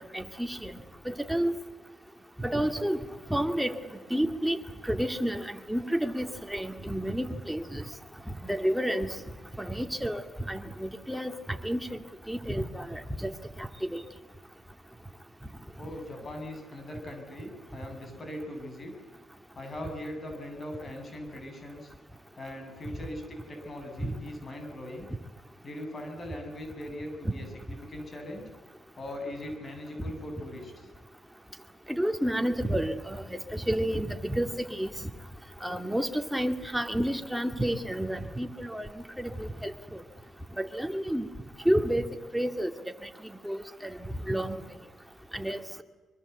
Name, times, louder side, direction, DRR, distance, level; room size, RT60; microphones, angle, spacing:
voice 1, 0.1-0.7 1.1-1.5 2.4-3.0 3.3-3.8 4.1-4.6 4.9-7.8 8.3-9.1 9.6-11.3 11.6-12.0 12.3-13.3 13.6-14.0 27.2-27.3 31.9-34.9 35.6-38.9 39.2-40.0 40.6-41.3 41.7-42.1 42.3-42.7 43.4-43.9 44.3-44.6 45.3-45.8, equal, 5° right, 6 dB, 2.3 m, -30 dB
voice 2, 15.8-18.9 19.5-21.9 22.4-25.1 25.6-28.4 29.0-30.9, left 1 dB, 40° left, 4 dB, 7.4 m, -40 dB
23.5 x 23.0 x 8.2 m, 1.3 s
supercardioid pair, 70°, 0 cm